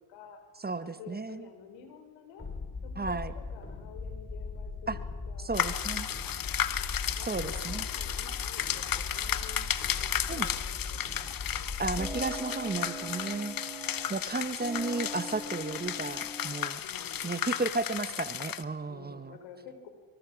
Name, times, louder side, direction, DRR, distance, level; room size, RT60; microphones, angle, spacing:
voice 1, 0.1-0.5 0.8-2.5 2.8-6.1 7.1-9.7 10.0-11.7 12.1-13.0 14.0-14.4 16.8-17.6 18.9-19.9, left 6 dB, 75° left, 7 dB, 4.9 m, -51 dB
voice 2, 0.6-1.4 3.0-3.3 4.9-5.0 5.4-6.1 7.2-7.8 10.3-10.5 11.5-13.5 14.1-16.8 17.2-19.4, right 3 dB, 20° right, 12 dB, 1.6 m, -34 dB
sound 1, 2.4-12.3, left 4 dB, 25° left, 5.8 m, -39 dB
sound 2, 5.5-18.6, left 10 dB, 50° left, 1.4 m, -34 dB
sound 3, 12.0-14.3 14.6-16.7, right 1 dB, 5° right, 6.8 m, -42 dB
25.5 x 24.0 x 6.4 m, 1.5 s
supercardioid pair, 65°, 45 cm